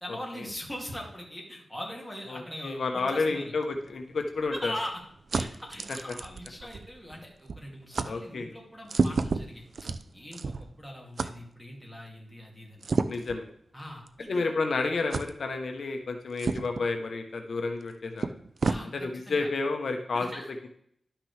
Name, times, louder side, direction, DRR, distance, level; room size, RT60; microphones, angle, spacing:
voice 1, 0.0-3.5 4.5-5.0 5.3-12.8 13.7-14.5 18.6-18.9 19.3-19.5 20.1-20.5, left 1 dB, 5° left, -2 dB, 2.6 m, -41 dB
voice 2, 2.3-4.7 8.0-8.5 13.1-13.5 14.3-18.3 18.9-20.3, left 3 dB, 70° left, 4 dB, 0.9 m, -30 dB
sound 1, 3.7-7.2 7.5-7.7 7.9-8.1 8.9-10.8 11.2-11.3 12.8-13.4 14.1-14.2 15.1-15.3 16.4-16.9 17.8-17.9 18.2-18.8, right 4 dB, 60° right, 0.5 m, -31 dB
11.5 x 5.9 x 3.3 m, 0.68 s
wide cardioid pair, 85°, 0 cm